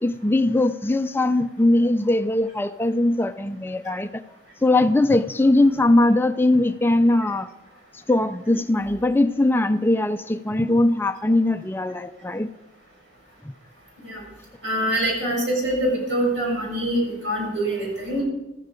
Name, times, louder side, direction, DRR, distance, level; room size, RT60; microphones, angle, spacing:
voice 1, 0.0-4.2 4.6-7.5 7.9-12.5, left 2 dB, 10° left, 10 dB, 0.4 m, -20 dB
voice 2, 14.6-18.2, right 1 dB, 85° right, -2 dB, 6.9 m, -24 dB
15.0 x 13.5 x 5.2 m, 1.0 s
head